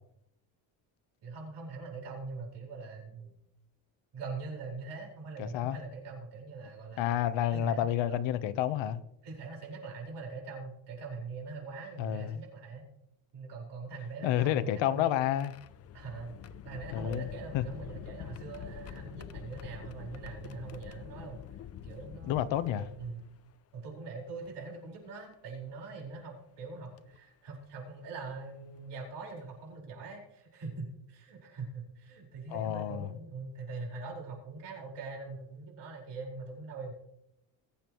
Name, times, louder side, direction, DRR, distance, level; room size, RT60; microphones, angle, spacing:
voice 1, 1.2-3.4 4.1-7.2 7.5-8.2 9.2-12.9 13.3-15.1 15.9-21.4 21.8-23.2 23.7-36.9, right 4 dB, 60° right, 4.9 m, -43 dB
voice 2, 5.4-5.8 7.0-9.0 12.0-12.4 14.2-15.5 16.9-17.3 17.5-17.6 22.2-22.9 32.5-33.1, left 11 dB, 75° left, 1.0 m, -30 dB
sound 1, 14.2-23.5 24.4-24.5 26.0-26.2 27.0-27.2 28.8-28.9 29.3-29.5, left 9 dB, 35° left, 0.4 m, -47 dB
21.0 x 8.7 x 3.1 m
cardioid pair, 140°, 45 cm